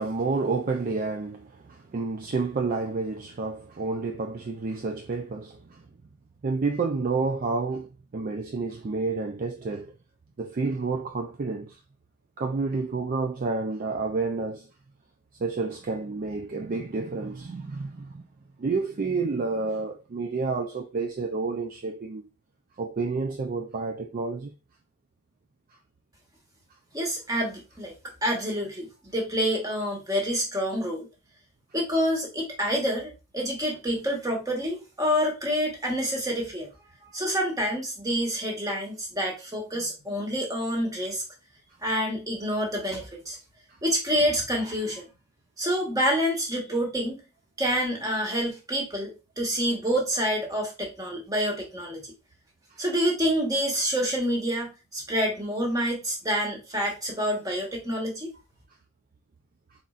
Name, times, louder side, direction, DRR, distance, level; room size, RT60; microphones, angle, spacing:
voice 1, 0.0-5.8 6.4-9.9 10.4-11.8 12.4-14.7 15.4-18.2 18.6-22.2 22.8-24.5, right 4 dB, 40° right, 0.4 m, -29 dB
voice 2, 26.9-27.9 28.2-28.9 29.1-31.1 31.7-36.7 37.1-41.2 41.8-43.4 43.8-45.0 45.6-47.2 47.6-52.0 52.8-58.3, equal, 15° right, 1.2 m, -27 dB
4.2 x 4.1 x 2.4 m
head